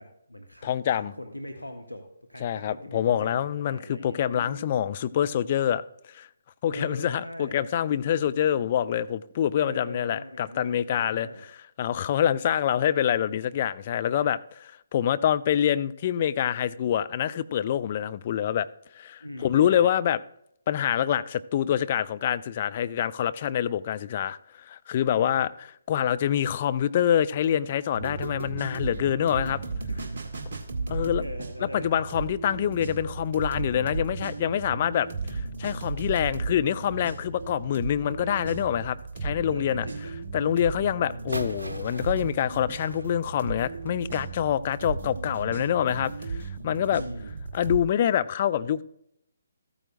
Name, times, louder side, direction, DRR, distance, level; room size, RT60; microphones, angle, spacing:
voice 1, 0.0-4.9 6.7-7.6 9.6-11.4 19.2-19.9 25.1-25.4 29.9-31.9 39.5-40.1 46.9-47.4, left 1 dB, 85° left, 1.1 m, -41 dB
voice 2, 0.6-1.1 2.4-5.8 6.1-6.3 6.6-11.3 11.8-18.7 18.9-20.2 20.7-29.6 30.9-31.2 31.7-39.9 40.3-47.0 47.5-48.8, left 10 dB, 35° left, 0.3 m, -26 dB
sound 1, 27.9-47.8, right 4 dB, 40° right, 1.4 m, -35 dB
sound 2, 41.3-44.0, right 2 dB, 65° right, 0.9 m, -39 dB
14.0 x 8.8 x 2.5 m
figure-of-eight pair, 140°, 0 cm